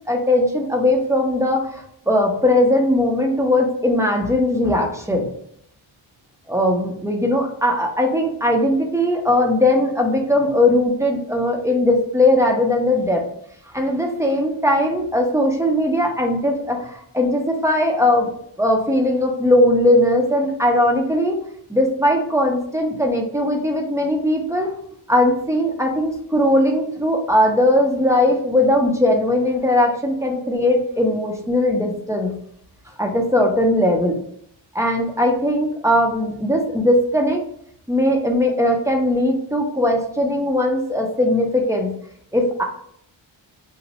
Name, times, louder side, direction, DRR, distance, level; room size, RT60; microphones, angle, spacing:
voice 1, 0.1-5.3 6.5-13.2 13.7-18.3 18.6-21.4 21.7-24.7 25.1-32.3 33.0-34.2 34.7-37.4 37.9-41.9 42.3-42.6, left 1 dB, 5° right, 1 dB, 0.5 m, -19 dB
2.9 x 2.2 x 4.0 m, 0.67 s
wide cardioid pair, 115°, 49 cm